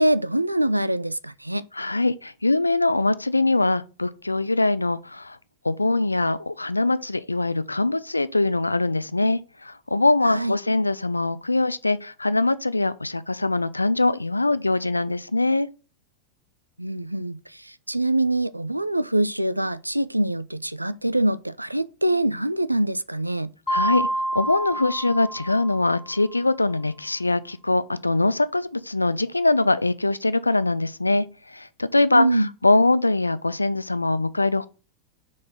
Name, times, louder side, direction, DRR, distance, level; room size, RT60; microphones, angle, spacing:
voice 1, 0.0-1.6 10.3-10.5 16.8-23.5 32.1-32.5, right 1 dB, 85° right, 0.3 m, -24 dB
voice 2, 1.7-5.4 5.6-15.7 23.7-34.7, left 2 dB, 85° left, 0.4 m, -23 dB
Mallet percussion, 23.7-26.3, right 1 dB, 10° left, 0.8 m, -28 dB
4.8 x 4.2 x 5.7 m
figure-of-eight pair, 90°, 0 cm